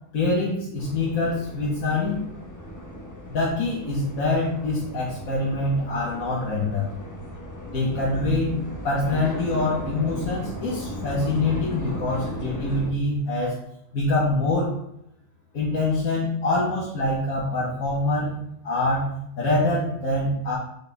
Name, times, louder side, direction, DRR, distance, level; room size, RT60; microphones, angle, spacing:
voice 1, 0.1-2.2 3.3-6.9 7.7-8.5 8.8-13.6 13.9-14.8 15.5-18.4 18.6-20.6, left 2 dB, 50° left, -6 dB, 1.7 m, -25 dB
sound 1, 0.8-12.9, left 1 dB, 20° left, 0.5 m, -36 dB
6.5 x 5.3 x 3.5 m, 0.77 s
omnidirectional pair, 1.9 m